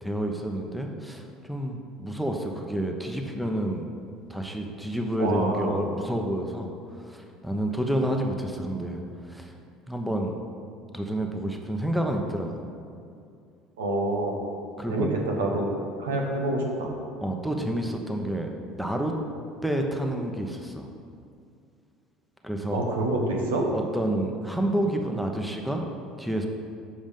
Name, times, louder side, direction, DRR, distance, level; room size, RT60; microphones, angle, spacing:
voice 1, 0.0-3.8 4.3-6.7 7.0-9.0 9.3-9.5 9.9-10.4 10.9-12.5 14.8-15.1 17.2-18.5 18.7-19.2 19.6-20.9 22.4-22.8 23.7-25.8 26.2-26.5, right 1 dB, 5° right, 2 dB, 1.0 m, -29 dB
voice 2, 5.2-5.9 13.8-14.4 14.9-15.7 16.0-16.9 22.7-23.7, right 2 dB, 80° right, 0 dB, 1.1 m, -27 dB
7.4 x 5.1 x 5.2 m, 2.4 s
hypercardioid pair, 65°, 0 cm